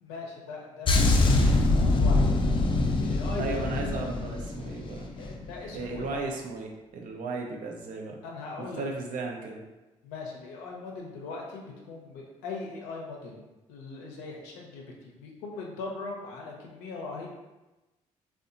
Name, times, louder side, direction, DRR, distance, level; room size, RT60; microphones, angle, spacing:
voice 1, 0.0-2.6 3.0-4.1 5.2-6.2 8.2-8.8 10.0-17.3, left 3 dB, 90° left, -1 dB, 0.5 m, -40 dB
sound 1, 0.9-5.4 5.7-6.0, left 2 dB, 35° left, 0.4 m, -24 dB
voice 2, 3.4-5.1 5.7-8.2 8.8-9.6, right 3 dB, 70° right, 1 dB, 0.5 m, -35 dB
2.7 x 2.2 x 2.4 m, 1.1 s
hypercardioid pair, 55°, 14 cm